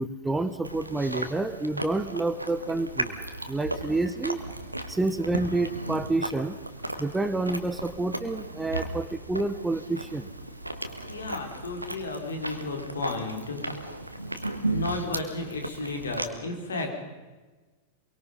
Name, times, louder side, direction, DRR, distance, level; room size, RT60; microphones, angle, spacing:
voice 1, 0.0-3.1 3.5-4.4 4.9-6.5 7.0-10.3, right 2 dB, 10° right, 12 dB, 1.1 m, -28 dB
Chewing mastication, 0.6-16.3, right 1 dB, 85° right, 1.8 m, -36 dB
voice 2, 11.1-13.8 14.7-16.9, left 2 dB, 70° left, 2 dB, 4.9 m, -33 dB
25.0 x 23.5 x 5.5 m, 1.3 s
figure-of-eight pair, 90°, 0 cm